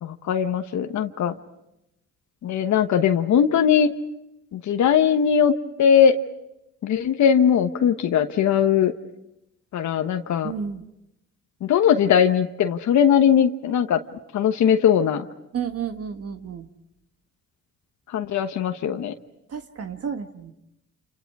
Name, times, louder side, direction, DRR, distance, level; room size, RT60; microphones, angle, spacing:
voice 1, 0.0-1.4 2.4-3.9 4.5-6.2 6.8-8.9 9.7-10.5 11.6-14.0 14.3-15.3 18.1-19.1, left 8 dB, 70° left, 7 dB, 1.2 m, -20 dB
voice 2, 10.4-10.8 15.5-16.7 19.5-20.5, right 7 dB, 50° right, 7 dB, 1.6 m, -31 dB
30.0 x 28.0 x 4.8 m, 0.86 s
cardioid pair, 90°, 30 cm